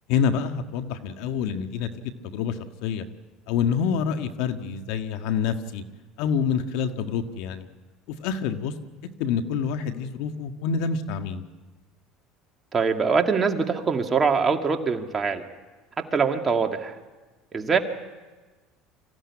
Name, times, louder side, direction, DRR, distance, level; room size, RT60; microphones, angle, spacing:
voice 1, 0.1-3.0 3.5-5.8 6.2-7.7 8.2-8.7 9.2-11.4, left 7 dB, 75° left, 8 dB, 1.5 m, -27 dB
voice 2, 12.7-15.4 16.0-17.0 17.5-17.8, right 5 dB, 25° right, 4 dB, 2.2 m, -23 dB
25.0 x 15.5 x 9.8 m, 1.3 s
supercardioid pair, 100°, 0 cm